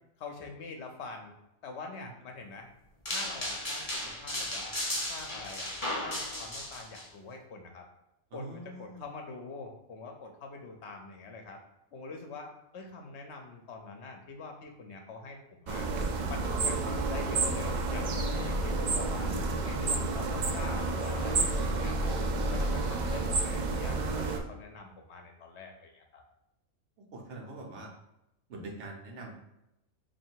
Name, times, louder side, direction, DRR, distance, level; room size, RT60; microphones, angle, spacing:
voice 1, 0.2-1.3 1.6-2.7 3.1-4.7 5.1-5.7 6.0-7.9 8.3-11.6 11.9-15.9 16.3-19.3 19.6-22.1 22.5-26.2, left 3 dB, 65° left, 3 dB, 0.9 m, -44 dB
sound 1, 3.1-7.0, left 1 dB, 20° left, 0.7 m, -35 dB
voice 2, 8.3-9.0 27.1-27.9 28.5-29.5, right 2 dB, 65° right, 0 dB, 1.1 m, -44 dB
sound 2, 15.7-24.4, right 3 dB, 80° right, 0.4 m, -30 dB
3.2 x 2.6 x 4.5 m, 0.89 s
omnidirectional pair, 1.3 m